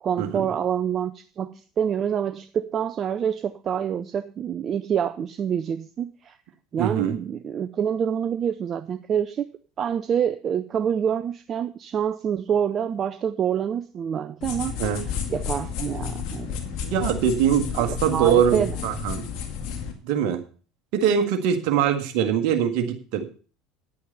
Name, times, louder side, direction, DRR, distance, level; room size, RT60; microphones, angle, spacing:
voice 1, 0.0-6.4 6.7-9.5 9.8-14.7 15.3-16.6 17.9-18.8, right 8 dB, 40° right, 13 dB, 0.5 m, -26 dB
voice 2, 6.8-7.2 14.8-15.0 16.8-19.2 20.0-20.4 20.9-23.3, right 8 dB, 60° right, 5 dB, 1.8 m, -22 dB
sound 1, 14.4-19.9, left 7 dB, 60° left, 2.1 m, -31 dB
10.0 x 8.5 x 5.5 m, 0.39 s
hypercardioid pair, 70°, 0 cm